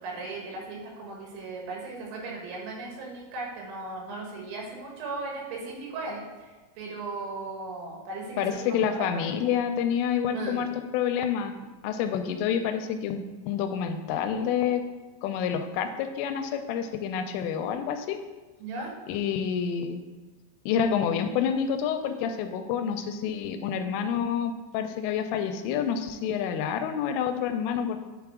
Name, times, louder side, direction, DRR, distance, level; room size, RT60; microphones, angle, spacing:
voice 1, 0.0-6.5 6.8-9.5 10.3-10.7 18.6-18.9, right 3 dB, 85° right, -2 dB, 4.2 m, -37 dB
voice 2, 8.4-10.7 10.9-11.6 11.8-13.2 13.5-14.8 15.2-18.2 19.1-20.0 20.7-28.0, left 8 dB, 85° left, 7 dB, 3.0 m, -28 dB
9.3 x 4.8 x 3.6 m, 1.3 s
omnidirectional pair, 5.8 m